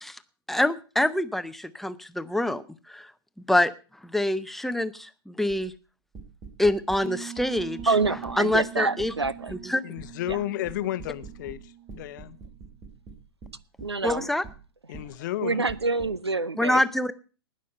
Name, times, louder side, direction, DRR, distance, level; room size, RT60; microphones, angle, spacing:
voice 1, 0.5-3.1 3.5-3.7 4.0-5.7 6.6-7.8 8.4-9.1 9.6-9.8 14.0-14.4 16.6-17.1, left 1 dB, ahead, 0.7 m, -25 dB
sound 1, 5.5-5.7 6.1-7.0 7.4-8.7 9.0-9.6 10.0-11.6 11.9-14.6 14.9-15.1 15.7-16.1, right 4 dB, 25° right, 3.3 m, -43 dB
sound 2, 7.0-12.6, right 10 dB, 45° right, 4.4 m, -44 dB
voice 2, 7.9-9.5 10.3-10.4 13.8-14.3 15.4-16.8, right 3 dB, 90° right, 0.7 m, -26 dB
voice 3, 9.8-12.4 14.9-15.6, left 14 dB, 45° left, 0.8 m, -32 dB
19.0 x 6.4 x 5.4 m
figure-of-eight pair, 110°, 13 cm